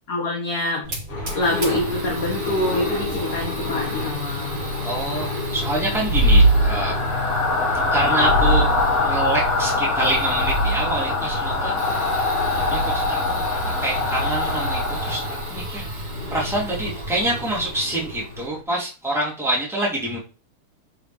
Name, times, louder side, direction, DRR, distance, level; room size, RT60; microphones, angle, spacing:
voice 1, 0.1-0.9 1.4-4.6, left 1 dB, 45° left, -2 dB, 2.4 m, -25 dB
Fire, 0.8-18.5, right 1 dB, 65° right, 4.7 m, -34 dB
sound 1, 1.1-18.6, left 4 dB, 85° left, 3.4 m, -33 dB
voice 2, 4.8-6.9 7.9-8.8 9.0-12.0 12.5-20.2, right 1 dB, ahead, -5 dB, 3.1 m, -26 dB
sound 2, 5.7-15.6, left 1 dB, 70° left, 4.4 m, -21 dB
12.0 x 5.0 x 3.5 m, 0.33 s
omnidirectional pair, 2.4 m